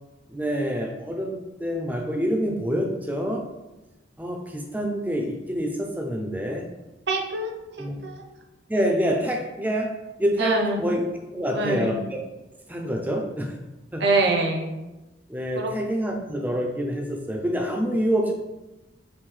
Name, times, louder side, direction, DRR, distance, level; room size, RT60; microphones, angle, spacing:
voice 1, 0.3-3.4 4.2-6.7 7.8-8.0 8.7-9.9 10.2-11.0 11.3-12.2 12.7-13.6 13.9-14.0 15.3-18.3, equal, 10° right, 2 dB, 0.4 m, -26 dB
voice 2, 7.1-7.5 7.8-8.2 10.4-10.8 11.5-11.9 14.0-14.7 15.6-15.7, right 3 dB, 65° right, 2 dB, 0.6 m, -24 dB
5.4 x 2.6 x 3.1 m, 1.1 s
head